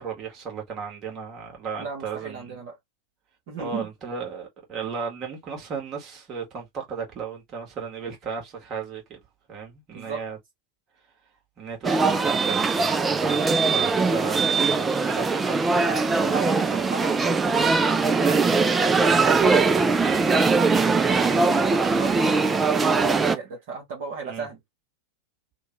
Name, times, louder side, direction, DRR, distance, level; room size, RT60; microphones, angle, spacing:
voice 1, 0.0-2.6 3.6-9.2 9.5-10.4 11.6-16.8 18.3-18.4 24.2-24.5, right 6 dB, 30° right, 1.5 m, -35 dB
voice 2, 1.8-2.8 3.5-3.9 9.9-10.2 15.7-17.4 18.0-20.4 20.9-24.6, right 4 dB, 50° right, 1.1 m, -36 dB
sound 1, 11.8-23.4, right 4 dB, 15° right, 0.3 m, -21 dB
2.9 x 2.2 x 3.0 m
figure-of-eight pair, 90°, 0 cm